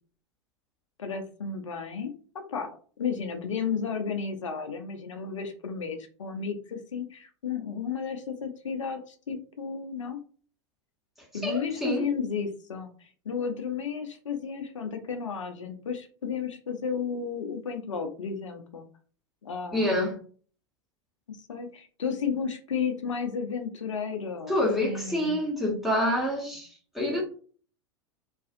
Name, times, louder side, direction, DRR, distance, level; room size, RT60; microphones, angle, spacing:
voice 1, 1.0-2.7 3.0-10.2 11.3-18.8 19.4-20.1 21.3-25.4, left 6 dB, 85° left, 0.5 m, -33 dB
voice 2, 11.4-12.1 19.7-20.2 24.5-27.2, left 1 dB, ahead, 1.0 m, -27 dB
2.5 x 2.3 x 2.5 m
hypercardioid pair, 95°, 16 cm